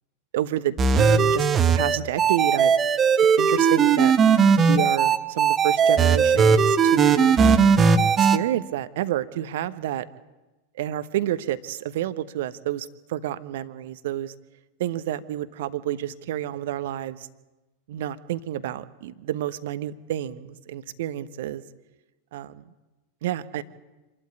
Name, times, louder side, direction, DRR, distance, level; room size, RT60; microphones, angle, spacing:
voice 1, 0.3-2.8 3.4-4.1 4.7-7.4 8.2-10.0 10.8-14.3 14.8-17.3 17.9-21.6 22.3-22.6 23.2-23.6, right 12 dB, 55° right, 13 dB, 1.1 m, -29 dB
sound 1, 0.8-8.4, right 6 dB, 25° right, 1.2 m, -18 dB
26.5 x 12.5 x 9.5 m, 1.1 s
figure-of-eight pair, 90°, 0 cm